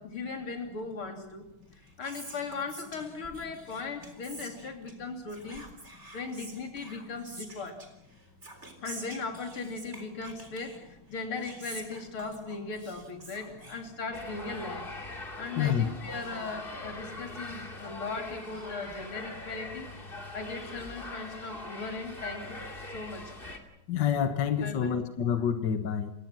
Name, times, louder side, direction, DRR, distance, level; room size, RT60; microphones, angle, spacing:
voice 1, 0.0-1.4 2.0-5.6 6.1-7.8 8.8-14.9 15.4-22.6 22.9-23.3 24.6-25.0, left 4 dB, 80° left, 4.1 m, -38 dB
Whispering, 1.5-14.4, right 2 dB, 30° right, 4.0 m, -48 dB
sound 1, 14.1-23.6, left 2 dB, 25° left, 2.7 m, -42 dB
voice 2, 15.6-15.9 23.9-26.1, left 8 dB, 60° left, 1.8 m, -27 dB
29.5 x 17.5 x 7.6 m
omnidirectional pair, 2.3 m